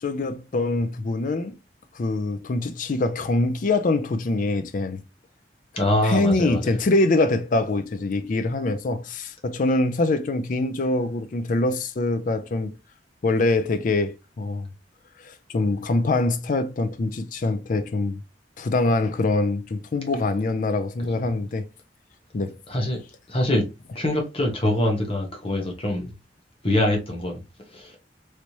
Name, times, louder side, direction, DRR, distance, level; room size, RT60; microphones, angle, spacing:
voice 1, 0.0-1.6 1.9-5.0 6.0-12.7 13.2-14.7 15.2-18.2 18.6-21.7 22.3-22.6, left 2 dB, 45° left, 0.4 m, -24 dB
voice 2, 5.8-6.8 22.7-23.0 23.3-23.7 23.9-26.1 26.6-27.4 27.7-28.0, left 1 dB, 30° left, 0.9 m, -24 dB
3.3 x 3.0 x 2.6 m
head